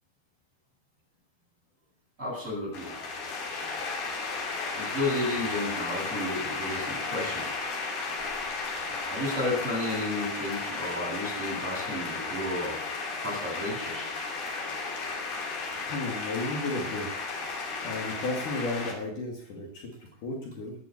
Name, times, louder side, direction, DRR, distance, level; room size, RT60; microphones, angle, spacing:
voice 1, 2.2-2.9 4.7-7.5 9.0-14.1, left 1 dB, 20° right, -5 dB, 8.4 m, -32 dB
sound 1, 2.7-18.9, left 4 dB, 85° left, 4.8 m, -34 dB
voice 2, 15.8-17.1 17.4-20.8, left 2 dB, 60° left, 0 dB, 3.5 m, -34 dB
13.0 x 10.0 x 7.0 m, 0.62 s
omnidirectional pair, 4.3 m